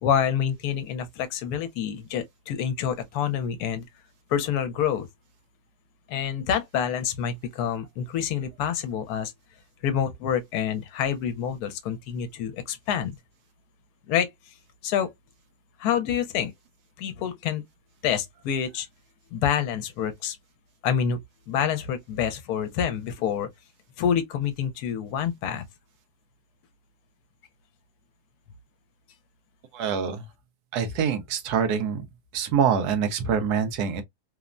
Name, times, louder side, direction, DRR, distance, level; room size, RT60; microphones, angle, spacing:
voice 1, 0.0-3.9 4.3-5.1 6.1-9.3 9.8-13.2 14.1-14.3 14.8-15.1 15.8-16.5 17.0-17.6 18.0-18.9 19.3-20.4 20.8-21.2 21.5-23.5 24.0-25.6, left 8 dB, 80° left, 1.1 m, -27 dB
voice 2, 29.7-30.2 30.7-32.1 32.3-34.0, right 7 dB, 75° right, 1.2 m, -25 dB
3.3 x 2.0 x 2.4 m
omnidirectional pair, 1.7 m